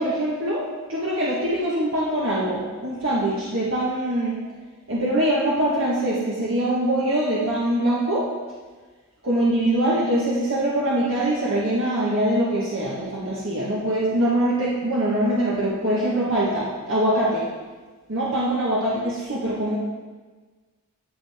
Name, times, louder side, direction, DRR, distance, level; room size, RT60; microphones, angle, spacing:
voice 1, 0.0-4.4 4.9-8.2 9.2-17.4 18.1-19.8, right 1 dB, 60° right, -7 dB, 1.6 m, -23 dB
12.0 x 7.6 x 3.6 m, 1.4 s
head